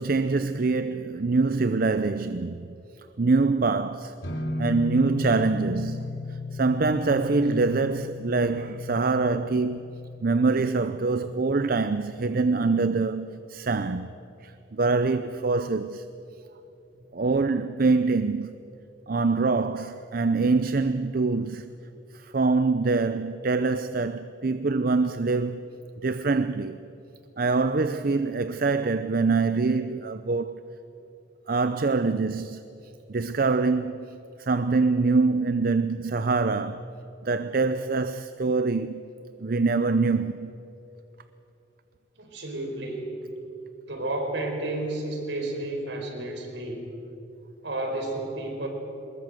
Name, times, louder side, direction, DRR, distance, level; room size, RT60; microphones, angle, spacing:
voice 1, 0.0-2.7 3.2-4.2 4.6-9.8 10.2-16.1 17.1-18.6 19.1-21.6 22.1-25.7 26.0-26.8 27.4-30.6 31.5-32.6 33.1-36.9 37.2-39.1 39.4-40.5, right 3 dB, 50° right, 0.6 m, -25 dB
sound 1, 4.2-11.8, left 2 dB, 85° left, 3.7 m, -35 dB
voice 2, 42.2-43.2 43.9-46.9 47.6-48.7, right 2 dB, 70° right, 4.7 m, -31 dB
23.0 x 20.5 x 7.9 m
head